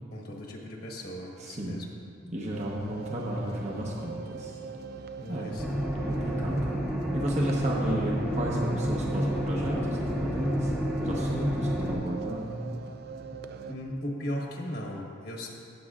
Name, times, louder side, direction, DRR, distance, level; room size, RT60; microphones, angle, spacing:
voice 1, 0.1-1.9 5.1-5.6 13.7-15.5, equal, 50° left, -1 dB, 1.3 m, -37 dB
voice 2, 1.4-1.8 2.3-4.6 5.3-5.5 6.1-6.7 7.1-10.7 11.0-12.6, equal, 35° right, -3 dB, 0.9 m, -32 dB
sound 1, 2.5-13.8, right 5 dB, 50° right, 0.4 m, -42 dB
sound 2, 5.6-11.9, equal, 5° right, 0.9 m, -30 dB
17.5 x 7.6 x 2.4 m, 2.4 s
head